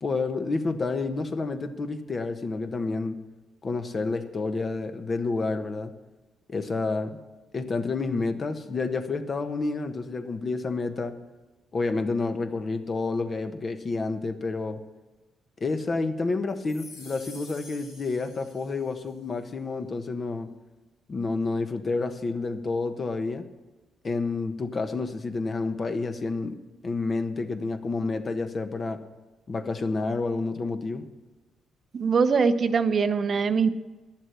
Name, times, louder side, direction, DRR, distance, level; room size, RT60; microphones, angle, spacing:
voice 1, 0.0-3.2 3.6-5.9 6.5-7.2 7.5-11.1 11.7-14.8 15.6-20.5 21.1-23.4 24.0-26.6 26.8-29.0 29.5-31.1, left 3 dB, 40° left, 8 dB, 1.2 m, -29 dB
sound 1, 16.6-19.1, left 3 dB, 90° left, 3.0 m, -48 dB
voice 2, 31.9-33.7, right 5 dB, 45° right, 11 dB, 0.7 m, -22 dB
11.0 x 7.4 x 9.7 m, 1.2 s
cardioid pair, 90°, 0 cm